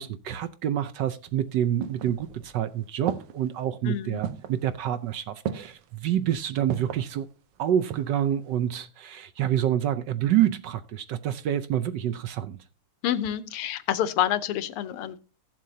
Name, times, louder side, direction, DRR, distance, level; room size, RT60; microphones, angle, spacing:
voice 1, 0.0-7.3 7.6-12.6, right 10 dB, 70° right, 1.1 m, -27 dB
sound 1, 1.3-2.6 3.1-3.6 4.2-4.6 5.4-5.9 6.7-7.1 7.6-8.2 8.5-8.6, right 9 dB, 85° right, 1.7 m, -35 dB
voice 2, 3.9-4.2 13.0-15.2, left 11 dB, 85° left, 1.7 m, -28 dB
15.5 x 7.5 x 2.8 m
omnidirectional pair, 2.4 m